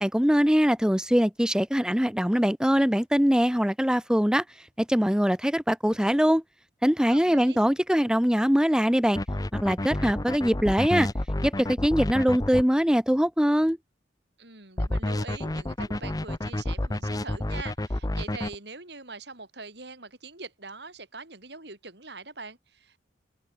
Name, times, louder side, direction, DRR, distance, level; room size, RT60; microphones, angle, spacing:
voice 1, 0.0-4.4 4.8-6.4 6.8-9.2 9.6-11.1 11.4-13.8, equal, 5° right, 0.9 m, -22 dB
voice 2, 7.1-7.6 14.4-23.0, right 3 dB, 65° right, 5.1 m, -43 dB
sound 1, 9.2-12.6 14.8-18.6, left 1 dB, 20° left, 0.7 m, -29 dB
head